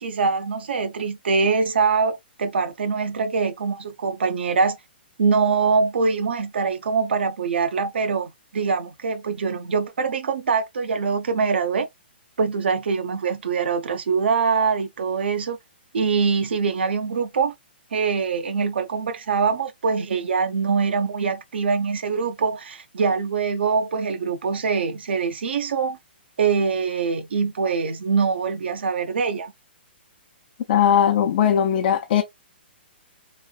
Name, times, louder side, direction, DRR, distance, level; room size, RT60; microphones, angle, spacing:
voice 1, 0.0-4.8 5.2-11.9 12.4-15.6 15.9-17.5 17.9-26.0 26.4-29.5, right 5 dB, 75° right, 0.7 m, -23 dB
voice 2, 30.7-32.2, left 9 dB, 55° left, 0.7 m, -19 dB
3.1 x 2.7 x 2.3 m
hypercardioid pair, 135°, 6 cm